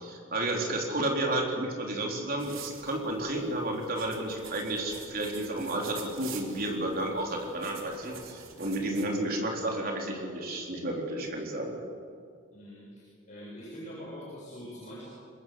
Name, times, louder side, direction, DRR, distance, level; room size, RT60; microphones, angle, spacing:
voice 1, 0.0-11.8, right 1 dB, 45° right, 0 dB, 4.1 m, -32 dB
sound 1, 2.4-9.1, right 5 dB, 80° right, 3.0 m, -46 dB
voice 2, 12.5-15.1, equal, 35° left, -7 dB, 7.8 m, -44 dB
25.5 x 20.5 x 8.0 m, 2.2 s
head